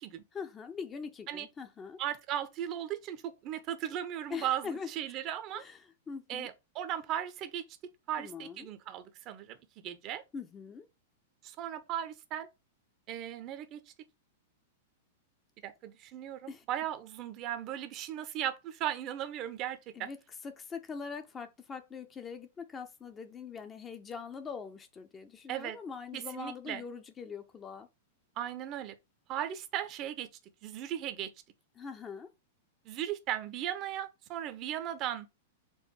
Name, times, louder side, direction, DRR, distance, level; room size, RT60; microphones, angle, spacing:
voice 1, 0.3-2.0 4.3-4.9 5.5-6.5 8.2-8.7 10.3-10.9 16.5-16.6 20.0-20.2 20.4-27.9 31.8-32.3, left 5 dB, 20° left, 0.7 m, -42 dB
voice 2, 2.0-5.6 6.3-7.6 8.1-9.6 9.8-10.2 11.4-12.5 13.1-13.8 15.6-20.1 25.5-25.8 26.1-26.8 28.4-29.0 29.3-30.3 30.6-31.3 32.8-35.3, right 11 dB, 35° right, 0.7 m, -37 dB
4.5 x 2.5 x 4.6 m
figure-of-eight pair, 100°, 0 cm